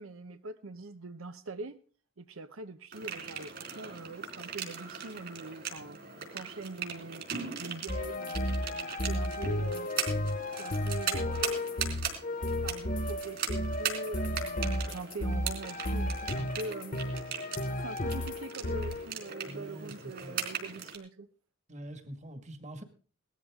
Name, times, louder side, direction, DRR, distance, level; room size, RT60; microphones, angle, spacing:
voice 1, 0.0-1.8 2.2-6.0 6.3-7.3 7.6-9.9 10.6-11.8 12.6-17.0 17.2-17.5 17.8-21.3, right 3 dB, 85° right, 10 dB, 0.9 m, -43 dB
sound 1, 2.9-21.0, right 7 dB, 50° right, 4.0 m, -39 dB
sound 2, 7.9-19.1, left 1 dB, 40° left, 1.2 m, -33 dB
voice 2, 19.4-20.5 21.7-22.8, right 1 dB, 35° right, 9 dB, 2.0 m, -45 dB
18.5 x 13.5 x 3.7 m, 0.39 s
head